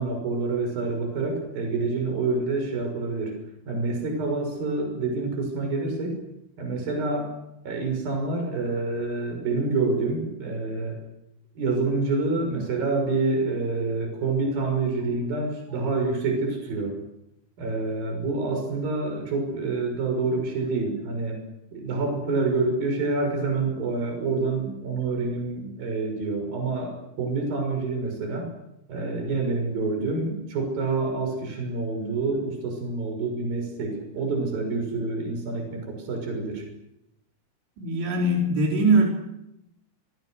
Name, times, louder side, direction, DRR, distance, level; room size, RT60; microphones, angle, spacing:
voice 1, 0.0-3.4 3.7-6.2 6.6-7.3 7.7-10.9 11.6-16.9 17.6-21.4 21.7-28.5 28.9-36.6, right 3 dB, 60° right, 3 dB, 7.9 m, -27 dB
voice 2, 37.8-39.1, right 2 dB, 90° right, 0 dB, 6.6 m, -21 dB
30.0 x 25.5 x 6.5 m, 0.85 s
omnidirectional pair, 4.8 m